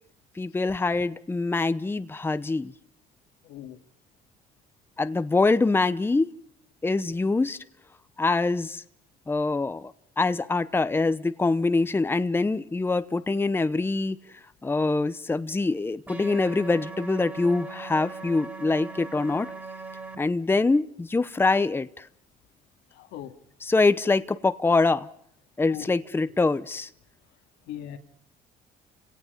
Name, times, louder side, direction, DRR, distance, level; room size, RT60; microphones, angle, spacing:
voice 1, 0.4-2.7 5.0-6.3 6.8-7.6 8.2-8.8 9.3-14.2 14.6-19.5 20.2-22.1 23.6-25.1 25.6-26.9, left 3 dB, 15° left, 13 dB, 0.9 m, -24 dB
voice 2, 3.4-3.8 22.9-23.3 25.7-25.9 27.7-28.0, left 11 dB, 90° left, 6 dB, 2.5 m, -39 dB
sound 1, 16.1-20.2, right 3 dB, 10° right, 3.5 m, -40 dB
30.0 x 18.0 x 5.3 m, 0.62 s
cardioid pair, 110°, 17 cm